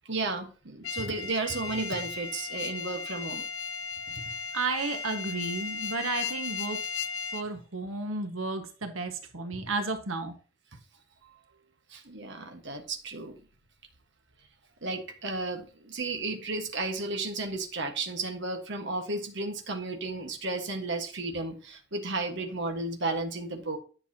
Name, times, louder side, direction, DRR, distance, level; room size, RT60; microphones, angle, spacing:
voice 1, 0.1-3.4 11.9-13.4 14.8-23.8, right 2 dB, 60° right, 1.5 m, -33 dB
sound 1, 0.8-7.5, left 5 dB, 65° left, 0.6 m, -36 dB
voice 2, 4.5-6.8 7.3-10.3, right 3 dB, 80° right, 1.5 m, -32 dB
10.5 x 6.6 x 2.9 m
head